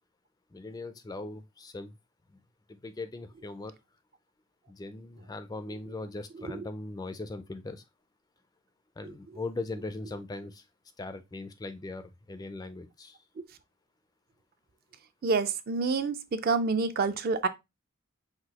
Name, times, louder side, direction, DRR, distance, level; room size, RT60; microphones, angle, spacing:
voice 1, 0.5-2.0 2.7-3.7 4.7-7.8 9.0-10.6 11.0-13.2, left 2 dB, 20° left, 0.3 m, -39 dB
voice 2, 15.2-17.5, right 4 dB, 45° right, 0.4 m, -28 dB
5.8 x 2.7 x 2.8 m
head